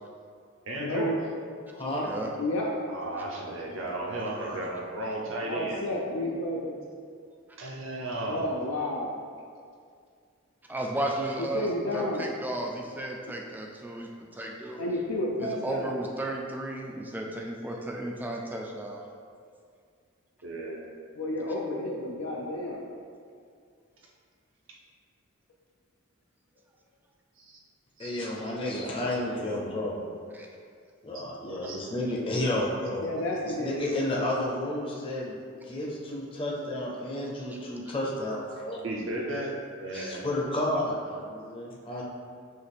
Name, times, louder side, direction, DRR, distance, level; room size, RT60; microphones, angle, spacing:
voice 1, 0.7-1.2 2.9-5.8 7.6-8.5 17.6-17.8 20.4-20.9 27.4-27.6 28.0-28.2 31.1-31.2 31.6-31.8 38.8-39.5 39.8-40.2, right 2 dB, 65° right, -2 dB, 0.7 m, -34 dB
voice 2, 1.7-2.1 4.2-4.6 28.0-30.0 31.0-33.1 33.6-35.3 35.7-38.8 39.9-42.0, left 1 dB, 25° left, -4 dB, 0.6 m, -31 dB
voice 3, 5.4-6.8 8.2-9.1 11.4-12.3 14.8-16.0 21.2-22.8 33.0-33.8, left 1 dB, 80° left, -2 dB, 0.5 m, -31 dB
voice 4, 10.7-14.1 14.4-14.8 15.4-19.0 30.3-30.5 39.9-40.1, right 1 dB, 10° right, 0 dB, 0.3 m, -34 dB
6.3 x 2.4 x 3.4 m, 2.2 s
head